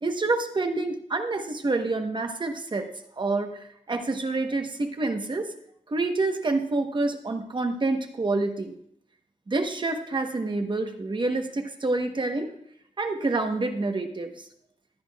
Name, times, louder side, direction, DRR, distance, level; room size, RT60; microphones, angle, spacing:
voice 1, 0.0-2.9 3.2-5.5 5.9-8.8 9.5-12.5 13.0-14.5, right 3 dB, 40° right, 5 dB, 1.1 m, -27 dB
15.5 x 10.5 x 2.4 m, 0.70 s
wide cardioid pair, 120°, 13 cm